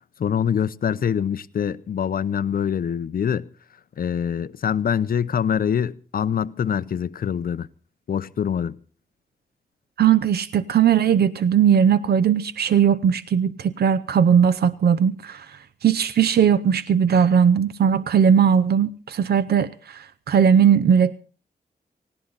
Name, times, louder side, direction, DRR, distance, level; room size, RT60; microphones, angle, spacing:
voice 1, 0.2-3.5 4.0-7.7 8.1-8.7, left 8 dB, 60° left, 0.7 m, -24 dB
voice 2, 10.0-15.5 15.8-21.1, right 8 dB, 75° right, 0.7 m, -18 dB
19.0 x 16.5 x 4.0 m
wide cardioid pair, 145°, 17 cm